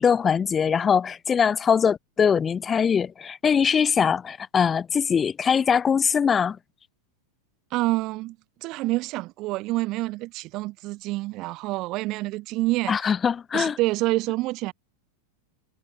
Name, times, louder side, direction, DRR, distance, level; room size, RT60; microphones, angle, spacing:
voice 1, 0.0-6.6 12.9-13.8, left 7 dB, 20° left, 0.5 m, -22 dB
voice 2, 7.7-13.1 13.5-14.7, right 20 dB, 40° right, 1.8 m, -27 dB
figure-of-eight pair, 90°, 0 cm